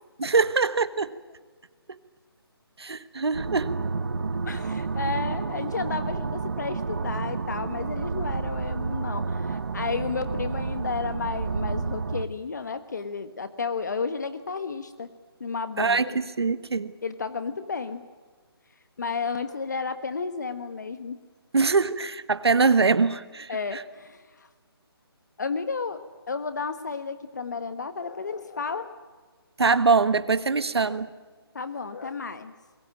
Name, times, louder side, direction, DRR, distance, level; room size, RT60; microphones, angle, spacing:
voice 1, 0.2-1.1 2.8-3.7 15.8-16.9 21.5-23.8 29.6-31.1, right 4 dB, 75° right, 13 dB, 1.4 m, -23 dB
sound 1, 3.3-12.2, right 4 dB, 50° right, 1.3 m, -30 dB
voice 2, 4.4-15.1 15.4-16.2 17.0-18.1 19.0-21.2 23.5-24.5 25.4-29.0 30.9-31.0 31.5-32.5, left 5 dB, 45° left, 11 dB, 1.3 m, -32 dB
26.5 x 21.5 x 9.0 m, 1.4 s
hypercardioid pair, 175°, 13 cm